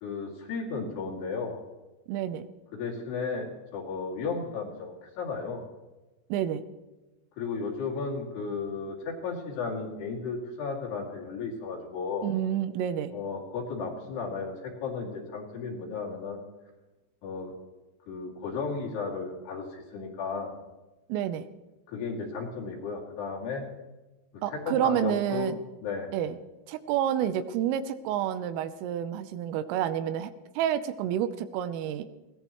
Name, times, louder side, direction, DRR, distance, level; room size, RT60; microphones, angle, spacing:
voice 1, 0.0-1.6 2.7-5.6 7.4-12.3 13.1-16.4 17.2-17.5 18.1-20.5 21.9-23.7 24.5-25.5 25.8-26.1, left 4 dB, 60° left, -2 dB, 4.3 m, -34 dB
voice 2, 2.1-2.5 6.3-6.6 12.2-13.1 21.1-21.5 24.4-25.6 26.1-26.4 26.7-30.3 30.6-32.0, right 10 dB, 85° right, 12 dB, 3.4 m, -29 dB
20.5 x 17.5 x 3.1 m, 1.1 s
omnidirectional pair, 5.8 m